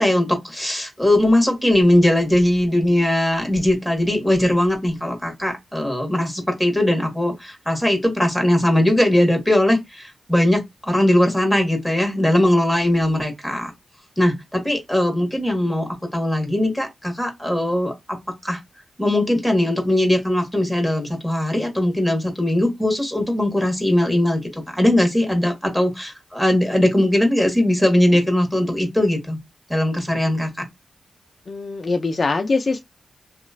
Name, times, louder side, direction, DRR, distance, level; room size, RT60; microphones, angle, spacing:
voice 1, 0.0-13.7 14.2-18.2 18.4-18.6 19.0-29.4 29.7-30.6, left 1 dB, ahead, 1.5 m, -20 dB
voice 2, 31.5-32.8, left 3 dB, 45° left, 0.4 m, -22 dB
2.9 x 2.3 x 2.5 m
cardioid pair, 65°, 0 cm